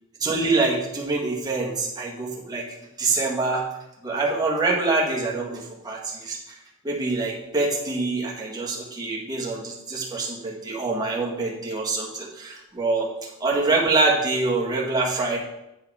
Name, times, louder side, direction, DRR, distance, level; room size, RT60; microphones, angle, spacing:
voice 1, 0.2-2.6 3.0-3.6 4.0-6.4 6.8-13.1 13.4-15.4, right 3 dB, 20° right, -3 dB, 1.6 m, -25 dB
9.5 x 4.8 x 4.8 m, 0.90 s
head